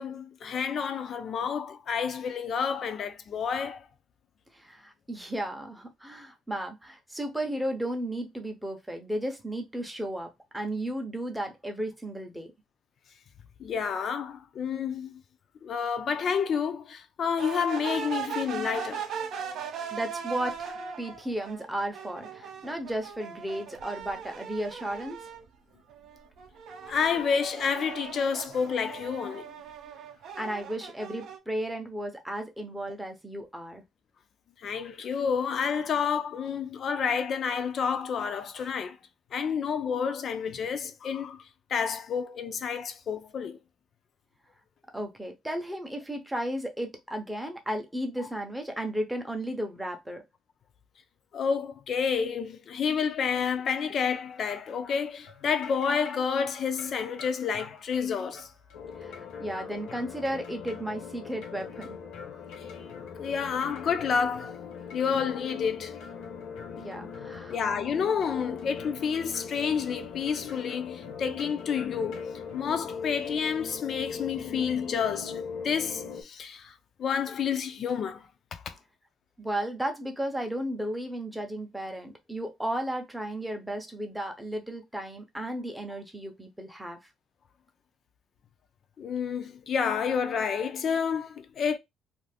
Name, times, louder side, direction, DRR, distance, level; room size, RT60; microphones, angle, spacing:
voice 1, 0.0-3.9 13.6-15.2 15.6-19.1 26.9-29.5 34.6-39.0 39.3-43.6 48.2-48.3 51.3-58.5 62.6-62.7 63.2-64.6 64.9-66.0 67.5-78.8 89.0-91.8, left 6 dB, 40° left, 0.4 m, -29 dB
voice 2, 4.5-12.5 19.9-25.2 30.4-33.8 44.9-50.2 59.0-62.0 66.7-67.5 79.4-87.0, right 1 dB, 5° right, 0.6 m, -34 dB
sound 1, 17.4-25.5 25.9-31.4, right 7 dB, 60° right, 0.5 m, -39 dB
sound 2, 54.0-72.6, left 4 dB, 85° left, 1.0 m, -51 dB
sound 3, 58.7-76.2, left 6 dB, 70° left, 0.7 m, -41 dB
2.5 x 2.5 x 3.3 m
cardioid pair, 160°, 0 cm